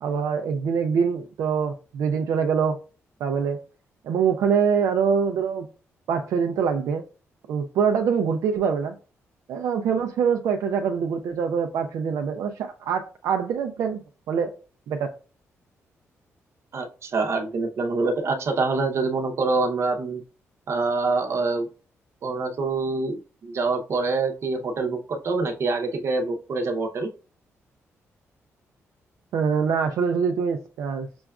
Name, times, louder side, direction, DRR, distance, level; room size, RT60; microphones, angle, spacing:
voice 1, 0.0-2.8 3.2-3.6 4.0-5.7 6.1-7.0 7.5-8.9 9.5-14.0 14.3-14.5 14.9-15.1 29.3-31.1, right 6 dB, 80° right, 6 dB, 0.4 m, -24 dB
voice 2, 16.7-20.2 20.7-21.7 22.2-27.1, right 3 dB, 60° right, 5 dB, 0.7 m, -25 dB
5.9 x 2.3 x 2.3 m, 0.36 s
cardioid pair, 90°, 5 cm